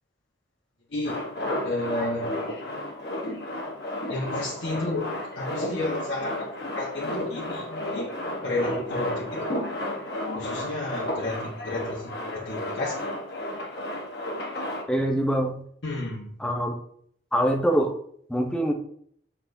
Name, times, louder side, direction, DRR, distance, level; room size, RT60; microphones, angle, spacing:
voice 1, 0.9-1.2 1.6-2.4 4.1-8.2 8.4-9.6 10.3-12.9 15.8-16.3, left 2 dB, 80° left, -5 dB, 1.3 m, -32 dB
Male speech man speaking, 1.0-14.8, left 1 dB, 60° left, 1.1 m, -32 dB
voice 2, 14.9-15.6 16.4-16.7 17.3-18.0 18.3-18.7, right 1 dB, 5° left, 3 dB, 0.7 m, -24 dB
6.6 x 5.6 x 2.7 m, 0.63 s
head